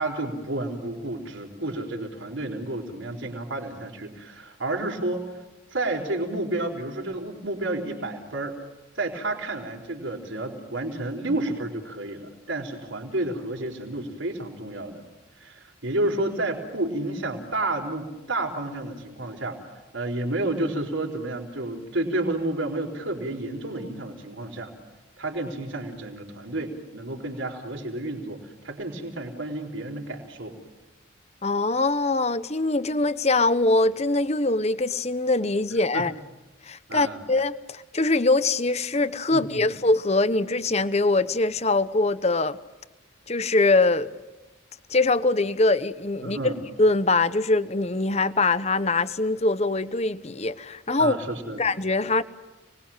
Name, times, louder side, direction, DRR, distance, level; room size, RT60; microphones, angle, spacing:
voice 1, 0.0-5.2 5.7-8.6 8.9-15.0 15.4-24.7 25.2-30.6 35.9-36.1 36.9-37.2 39.3-39.7 46.2-46.6 51.0-51.6, right 2 dB, 70° right, 4.5 m, -30 dB
voice 2, 31.4-36.1 36.6-42.6 43.3-44.1 44.9-46.4 46.8-51.2 51.6-52.2, left 2 dB, 30° left, 1.0 m, -23 dB
29.5 x 21.5 x 7.4 m
head